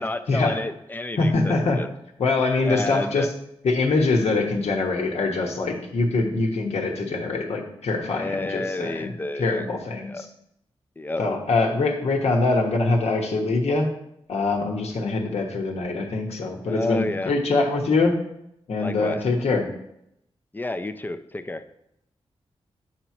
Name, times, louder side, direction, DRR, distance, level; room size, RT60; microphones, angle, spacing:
voice 1, 0.0-1.9 2.6-3.3 8.1-9.7 10.0-10.3 11.0-11.2 16.7-17.3 18.8-19.2 20.5-21.6, left 2 dB, 15° left, 9 dB, 0.4 m, -30 dB
voice 2, 1.2-1.8 2.2-3.3 3.6-9.1 9.4-10.3 11.2-13.9 14.3-18.2 18.7-19.7, left 3 dB, 80° left, 1 dB, 1.1 m, -23 dB
8.2 x 3.0 x 5.9 m, 0.79 s
wide cardioid pair, 100°, 11 cm